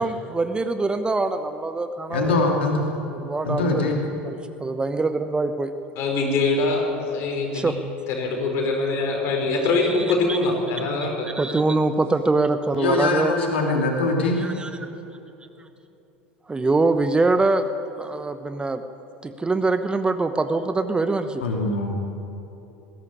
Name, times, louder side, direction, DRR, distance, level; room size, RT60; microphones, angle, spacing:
voice 1, 0.0-2.5 3.2-3.8 4.2-5.7 7.5-7.8 9.8-10.4 11.3-13.3 14.4-14.7 16.5-17.7 18.0-18.8 19.2-21.4, right 3 dB, 15° right, 10 dB, 1.0 m, -24 dB
voice 2, 2.1-2.8 3.4-4.0 12.8-14.4 21.4-21.9, left 3 dB, 70° left, 1 dB, 2.7 m, -22 dB
voice 3, 6.0-7.8 8.1-11.3, left 3 dB, 45° left, 1 dB, 5.3 m, -23 dB
20.5 x 15.5 x 10.0 m, 3.0 s
figure-of-eight pair, 75°, 6 cm